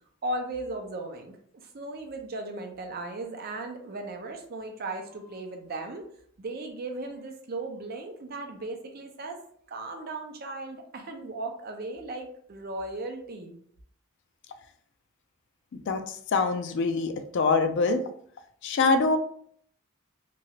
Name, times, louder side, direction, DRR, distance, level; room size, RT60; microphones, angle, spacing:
voice 1, 0.2-6.0 6.4-9.4 9.7-13.6, right 2 dB, 45° right, 4 dB, 0.5 m, -37 dB
voice 2, 16.3-18.0 18.6-19.2, left 3 dB, 55° left, 7 dB, 0.4 m, -24 dB
3.0 x 2.3 x 2.8 m, 0.62 s
head